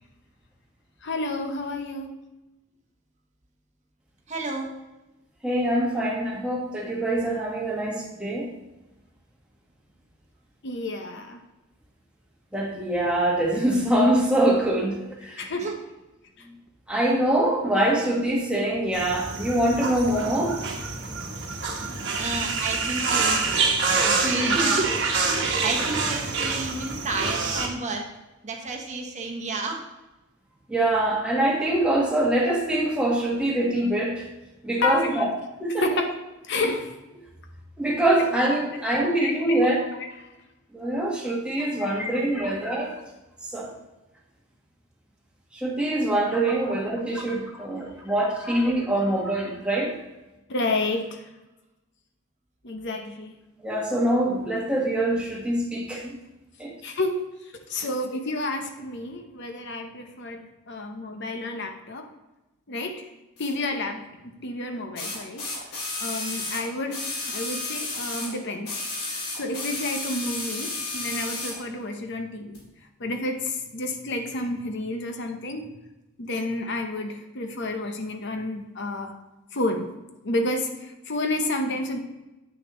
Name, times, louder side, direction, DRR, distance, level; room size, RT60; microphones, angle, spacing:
voice 1, 1.0-2.1 10.6-11.4 15.4-15.7 16.4-16.5 34.8-35.3 35.8-36.1 36.5-36.9 39.2-39.6 40.2-40.3 41.6-41.7 42.4-42.5 46.7-46.8 47.6-47.7 48.4-48.5 50.5-51.3 52.6-53.3 56.8-62.1 62.7-63.1 63.4-65.5 66.0-68.8 69.3-72.6 73.0-75.8 76.2-79.1 79.5-79.9 80.2-82.0, left 2 dB, 55° left, 5 dB, 0.8 m, -30 dB
voice 2, 4.3-4.7 15.6-15.7 22.1-23.6 23.9-28.1 28.4-29.8, right 2 dB, 35° right, 2 dB, 0.9 m, -31 dB
voice 3, 5.4-8.5 12.5-15.4 16.9-20.6 30.7-34.3 34.6-35.3 35.6-35.9 37.8-39.9 40.7-43.0 43.5-43.7 45.5-50.0 53.6-56.2 56.6-56.7, right 1 dB, 5° right, -3 dB, 1.3 m, -24 dB
sound 1, 18.9-27.7, right 4 dB, 50° right, 1.2 m, -26 dB
sound 2, 63.4-63.5 65.0-68.3 68.6-71.6 72.5-72.6, left 2 dB, 90° left, 2.2 m, -32 dB
8.6 x 6.6 x 3.0 m, 1.0 s
head